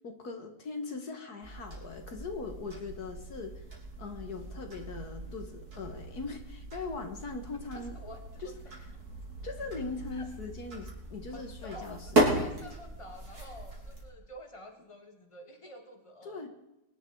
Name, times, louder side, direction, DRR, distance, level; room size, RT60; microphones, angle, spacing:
voice 1, 0.0-3.7 4.0-8.0 8.4-8.5 9.4-12.5 16.2-16.5, left 4 dB, 65° left, 5 dB, 2.1 m, -40 dB
sound 1, 1.4-14.0, right 1 dB, 65° right, 4.7 m, -36 dB
voice 2, 7.7-8.5 10.1-10.3 11.3-16.5, left 1 dB, 20° left, 3 dB, 2.4 m, -49 dB
23.5 x 11.0 x 4.7 m, 0.95 s
omnidirectional pair, 1.8 m